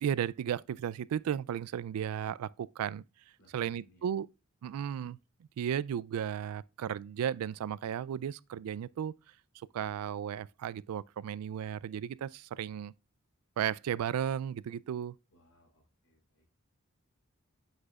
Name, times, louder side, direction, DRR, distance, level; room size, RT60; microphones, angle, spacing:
voice 1, 0.0-3.0 3.5-4.3 4.6-5.2 5.6-9.1 9.6-12.9 13.6-15.1, right 9 dB, 90° right, 0.3 m, -34 dB
voice 2, 3.4-4.1 15.3-16.4, equal, 65° left, 3.1 m, -66 dB
7.8 x 6.1 x 2.3 m
head